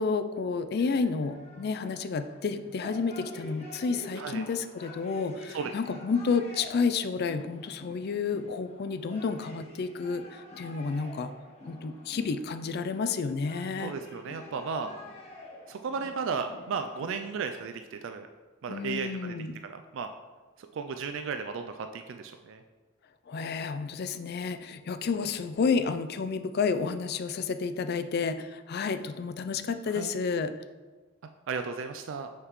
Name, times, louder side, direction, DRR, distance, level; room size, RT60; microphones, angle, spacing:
voice 1, 0.0-11.3 11.7-13.9 18.7-19.6 23.3-30.5, left 5 dB, 45° left, 10 dB, 0.3 m, -30 dB
sound 1, 0.7-17.6, left 1 dB, 30° left, 1.1 m, -47 dB
voice 2, 13.8-14.9 15.7-18.3 18.6-19.4 19.6-20.1 20.6-22.6 29.9-30.1 31.5-32.3, right 5 dB, 60° right, 7 dB, 0.3 m, -34 dB
6.3 x 5.8 x 3.1 m, 1.3 s
head